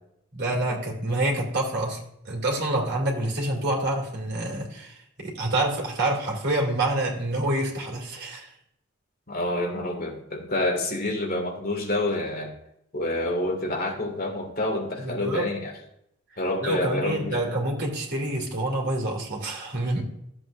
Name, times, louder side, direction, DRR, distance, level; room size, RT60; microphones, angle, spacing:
voice 1, 0.3-8.5 15.0-15.5 16.6-20.0, right 1 dB, 60° right, -1 dB, 2.7 m, -27 dB
voice 2, 9.3-12.5 12.9-15.7 16.4-17.6, left 1 dB, 50° left, 2 dB, 2.1 m, -28 dB
13.0 x 7.8 x 2.6 m, 0.76 s
head